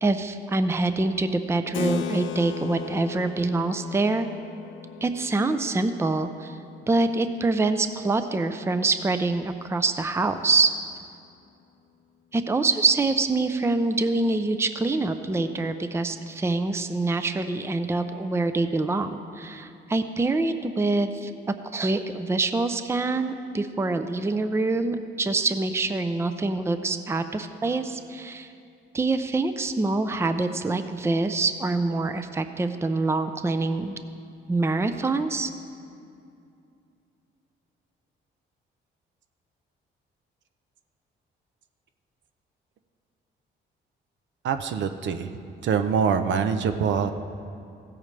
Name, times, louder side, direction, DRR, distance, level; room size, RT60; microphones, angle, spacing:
voice 1, 0.0-4.3 5.0-6.6 6.9-10.7 12.3-21.3 21.6-28.5 28.9-34.0 34.5-35.5, right 3 dB, 15° right, 9 dB, 0.5 m, -25 dB
Keyboard (musical), 1.7-7.8, left 8 dB, 75° left, 0.6 m, -37 dB
voice 2, 44.4-45.3 45.6-47.1, right 6 dB, 70° right, 8 dB, 0.7 m, -24 dB
16.0 x 8.6 x 3.3 m, 2.5 s
cardioid pair, 90°, 20 cm